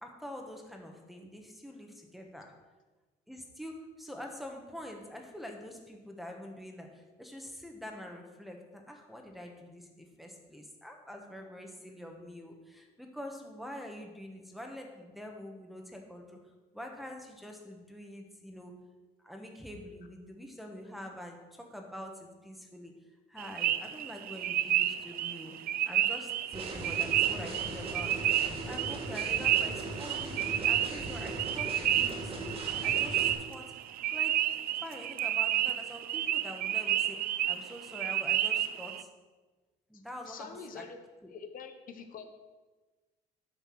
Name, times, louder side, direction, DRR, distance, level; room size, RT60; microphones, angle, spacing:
voice 1, 0.0-2.6 3.3-16.4 16.7-18.8 19.2-23.0 23.3-33.7 34.1-39.1 39.9-40.8 41.2-41.3, left 1 dB, ahead, 1 dB, 1.6 m, -46 dB
sound 1, 23.4-39.0, right 12 dB, 60° right, 0.5 m, -31 dB
sound 2, 26.5-33.3, right 2 dB, 35° right, 2.3 m, -39 dB
voice 2, 39.9-41.0 41.3-42.3, left 6 dB, 55° left, 6 dB, 1.0 m, -46 dB
10.0 x 5.3 x 6.4 m, 1.2 s
cardioid pair, 110°, 17 cm